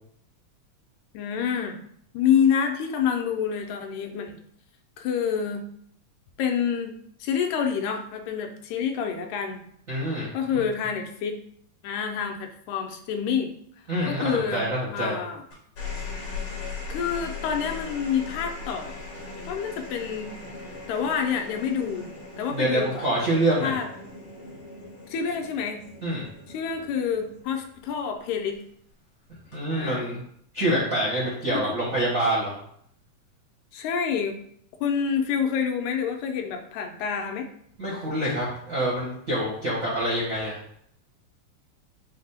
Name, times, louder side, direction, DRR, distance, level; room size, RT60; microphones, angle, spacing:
voice 1, 1.1-1.8 2.1-4.4 5.0-5.6 6.4-6.9 7.2-9.7 10.3-11.4 11.8-13.5 14.1-14.7 14.9-15.4 16.3-16.5 16.9-19.0 19.5-20.3 20.9-22.1 22.4-23.0 23.6-23.9 25.1-25.8 26.5-28.6 29.7-30.1 31.5-31.6 33.7-34.4 34.8-37.5, left 7 dB, 85° left, 4 dB, 2.0 m, -27 dB
voice 2, 9.9-10.3 13.9-15.2 22.5-23.8 26.0-26.2 29.5-30.2 30.5-32.5 37.8-40.6, right 1 dB, 60° right, -7 dB, 0.8 m, -26 dB
sound 1, 15.5-28.1 29.3-29.8, left 4 dB, 55° left, 1.7 m, -39 dB
5.7 x 2.0 x 4.2 m, 0.66 s
omnidirectional pair, 3.3 m